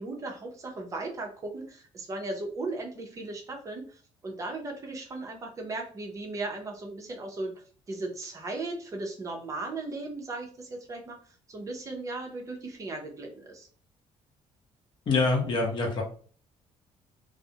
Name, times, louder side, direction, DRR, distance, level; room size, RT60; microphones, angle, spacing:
voice 1, 0.0-3.8 4.2-7.5 7.9-11.2 11.5-13.7, right 2 dB, 25° right, 2 dB, 0.6 m, -36 dB
voice 2, 15.1-16.0, left 3 dB, 40° left, 0 dB, 0.8 m, -25 dB
2.3 x 2.0 x 2.7 m, 0.43 s
cardioid pair, 145°, 12 cm